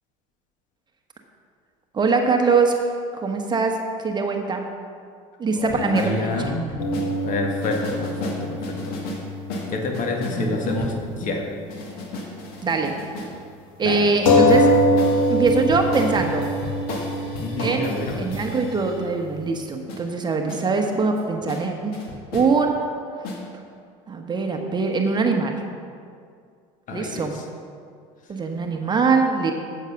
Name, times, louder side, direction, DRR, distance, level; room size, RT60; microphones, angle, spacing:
voice 1, 1.9-2.8 3.1-3.8 4.0-4.6 5.4-6.5 10.3-10.6 12.6-12.9 13.8-14.7 15.3-16.5 17.6-17.9 18.2-21.9 22.3-22.8 24.1-25.6 26.9-27.4 28.3-29.5, right 4 dB, 25° right, 3 dB, 1.1 m, -22 dB
voice 2, 5.5-6.8 7.2-9.0 9.7-11.5 13.8-14.1 14.3-14.5 17.4-18.2 26.9-27.4, left 2 dB, 50° left, 2 dB, 1.6 m, -28 dB
sound 1, 5.7-7.1 7.6-9.2 9.5-11.1 11.7-13.3 14.5-19.1 19.9-20.0 20.5-20.6 21.2-21.3 21.5-21.6 21.9-22.5 23.2-23.4, left 2 dB, 65° left, 2.0 m, -34 dB
sound 2, 6.8-10.7 10.9-11.0 14.3-19.5, left 1 dB, 80° left, 1.5 m, -23 dB
7.9 x 7.9 x 5.8 m, 2.2 s
supercardioid pair, 95°, 17 cm